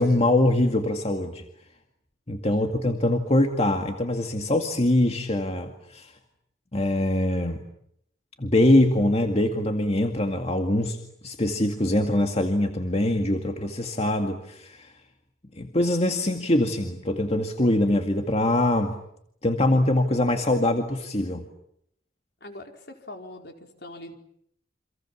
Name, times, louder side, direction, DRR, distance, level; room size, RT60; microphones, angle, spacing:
voice 1, 0.0-1.4 2.3-6.1 6.7-7.6 8.4-11.0 11.2-14.9 15.6-18.9 19.4-21.5, left 1 dB, 35° left, 4 dB, 2.1 m, -23 dB
voice 2, 22.4-24.2, left 1 dB, 60° left, 4 dB, 4.6 m, -42 dB
30.0 x 26.5 x 7.3 m, 0.73 s
head